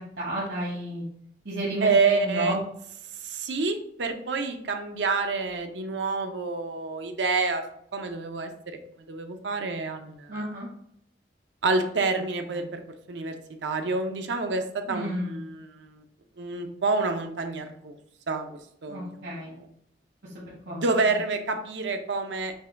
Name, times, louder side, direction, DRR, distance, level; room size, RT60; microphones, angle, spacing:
voice 1, 0.2-1.0 1.4-2.6 10.3-10.7 12.5-12.7 14.9-15.4 18.9-19.5 20.7-20.8, right 1 dB, 70° right, -7 dB, 1.1 m, -32 dB
voice 2, 1.8-2.6 3.2-7.6 7.9-8.8 9.1-10.5 11.6-12.8 13.1-16.0 16.4-18.0 18.3-19.7 20.7-22.5, right 3 dB, 85° right, 6 dB, 0.6 m, -28 dB
5.3 x 2.3 x 3.8 m, 0.70 s
head